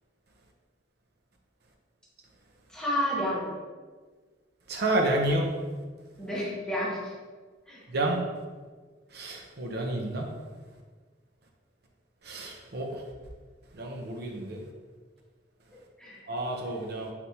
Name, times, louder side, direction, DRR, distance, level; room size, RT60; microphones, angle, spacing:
voice 1, 2.7-3.5 6.2-7.1 7.7-7.8 16.0-16.2, equal, 5° left, -6 dB, 0.9 m, -30 dB
voice 2, 4.7-5.5 7.9-8.2 9.1-10.3 12.2-13.0 13.7-14.6 16.3-17.1, right 1 dB, 55° right, 1 dB, 0.6 m, -30 dB
4.2 x 3.4 x 2.8 m, 1.5 s
head